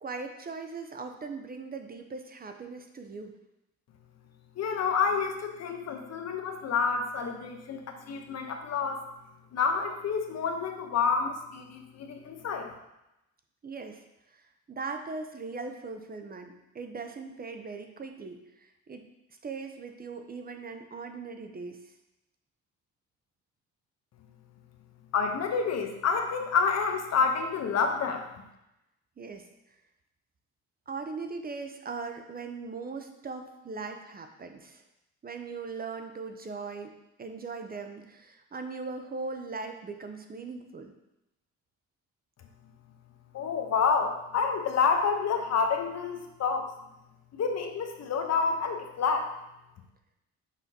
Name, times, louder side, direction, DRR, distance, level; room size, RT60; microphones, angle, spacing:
voice 1, 0.0-3.3 13.6-14.0 14.3-14.4 14.7-19.0 19.4-21.8 29.2-29.4 30.9-34.8 35.2-36.9 37.2-40.9, right 4 dB, 30° right, 6 dB, 0.6 m, -39 dB
voice 2, 4.6-9.1 9.5-12.7 25.1-28.3 43.3-46.7 47.3-49.3, left 5 dB, 60° left, 4 dB, 0.9 m, -28 dB
6.0 x 5.8 x 2.8 m, 0.90 s
cardioid pair, 90°, 30 cm